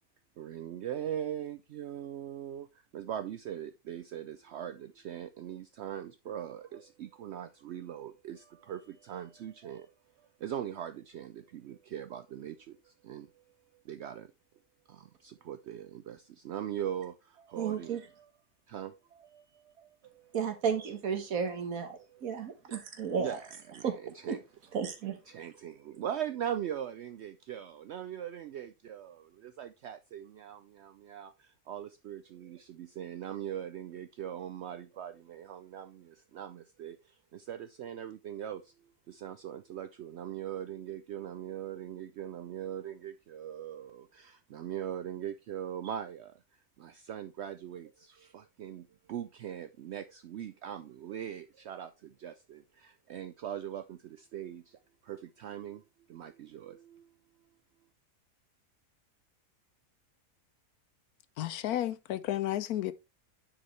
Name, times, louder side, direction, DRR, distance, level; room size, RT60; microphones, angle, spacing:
voice 1, 0.4-14.3 14.9-18.3 18.7-20.9 21.4-21.6 22.0-22.5 23.2-24.4 25.3-57.1, right 10 dB, 80° right, 0.6 m, -41 dB
voice 2, 17.6-18.0 20.3-23.4 23.8-23.9 24.3-24.4 24.7-25.2, right 6 dB, 60° right, 1.7 m, -33 dB
voice 3, 61.4-62.9, left 12 dB, 75° left, 1.1 m, -32 dB
9.9 x 4.8 x 3.2 m
omnidirectional pair, 1.7 m